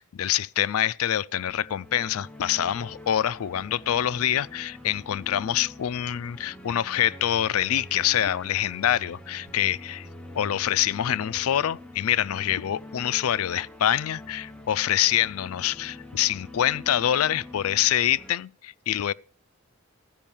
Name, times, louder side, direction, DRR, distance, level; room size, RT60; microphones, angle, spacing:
voice 1, 0.0-10.1 10.3-19.1, left 11 dB, 85° left, 0.4 m, -25 dB
sound 1, 1.3-18.3, left 1 dB, 5° left, 0.9 m, -45 dB
13.5 x 5.4 x 7.1 m
head